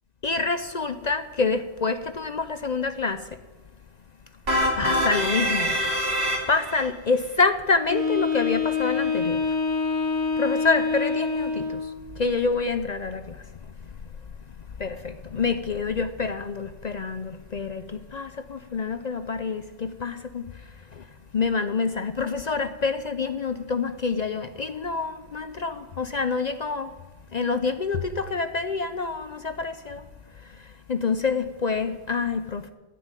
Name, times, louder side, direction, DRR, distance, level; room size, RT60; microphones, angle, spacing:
voice 1, 0.2-3.4 4.8-5.8 6.5-9.6 10.4-13.5 14.8-21.1 21.3-26.9 27.3-30.1 30.4-32.7, left 4 dB, 50° left, 0.6 m, -27 dB
sound 1, 4.5-6.9, equal, 55° right, 2.7 m, -24 dB
Wind instrument woodwind instrument, 7.9-12.0, left 5 dB, 30° left, 1.6 m, -26 dB
13.5 x 8.6 x 9.0 m
omnidirectional pair, 1.3 m